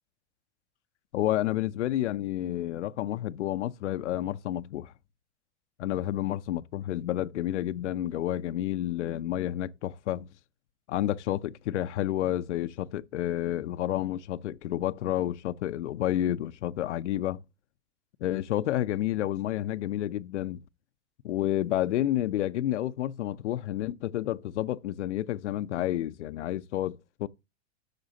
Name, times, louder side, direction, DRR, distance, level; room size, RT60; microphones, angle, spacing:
voice 1, 1.1-4.9 5.8-10.3 10.9-17.4 18.2-20.6 21.2-27.3, left 13 dB, 75° left, 0.6 m, -30 dB
11.5 x 6.7 x 2.7 m
hypercardioid pair, 115°, 35 cm